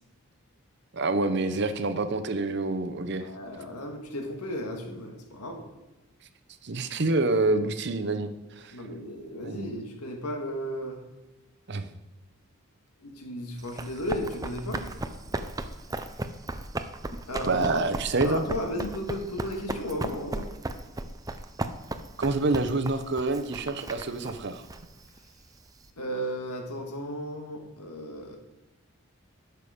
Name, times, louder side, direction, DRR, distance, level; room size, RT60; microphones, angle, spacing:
voice 1, 0.9-3.3 6.6-8.3 8.6-8.7 9.4-9.7 11.7-11.9 17.4-18.5 22.2-24.7, right 3 dB, 50° right, 10 dB, 0.7 m, -27 dB
voice 2, 3.2-5.7 8.7-11.0 13.0-14.9 17.3-17.8 18.2-20.5 26.0-28.4, equal, 90° left, 3 dB, 1.8 m, -34 dB
Run, 13.6-25.9, right 2 dB, 15° right, 0.4 m, -36 dB
11.5 x 6.8 x 5.1 m, 1.0 s
head